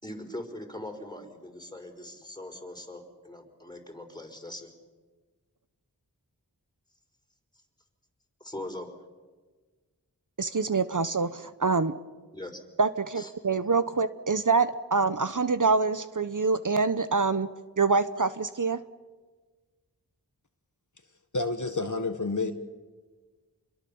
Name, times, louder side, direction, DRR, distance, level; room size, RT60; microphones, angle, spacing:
voice 1, 0.0-4.7 8.4-8.9 12.3-12.6 13.1-13.3, left 1 dB, 10° left, 3 dB, 4.8 m, -41 dB
voice 2, 10.4-11.9 12.8-17.5 17.8-18.8, right 4 dB, 50° right, 12 dB, 0.9 m, -25 dB
voice 3, 21.3-22.5, left 3 dB, 50° left, 7 dB, 1.6 m, -29 dB
27.5 x 22.0 x 7.1 m, 1.4 s
wide cardioid pair, 40°, 39 cm